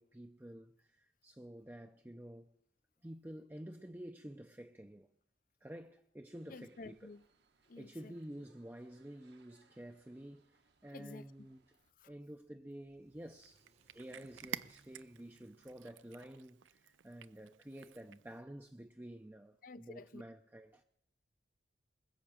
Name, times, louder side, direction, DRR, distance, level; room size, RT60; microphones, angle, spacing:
voice 1, 0.0-2.5 3.0-5.1 5.6-7.2 7.8-11.6 12.0-13.7 13.9-20.8, right 1 dB, 10° right, 0.5 m, -50 dB
sound 1, 6.3-11.9, right 4 dB, 65° right, 1.2 m, -73 dB
voice 2, 6.5-7.2 7.7-8.1 10.9-11.2 12.0-12.1 19.6-20.2, left 3 dB, 45° left, 0.5 m, -51 dB
Car / Accelerating revving vroom, 10.1-19.3, right 2 dB, 35° right, 1.0 m, -73 dB
Cat, 13.2-18.4, right 9 dB, 90° right, 0.5 m, -51 dB
20.5 x 7.3 x 8.8 m
head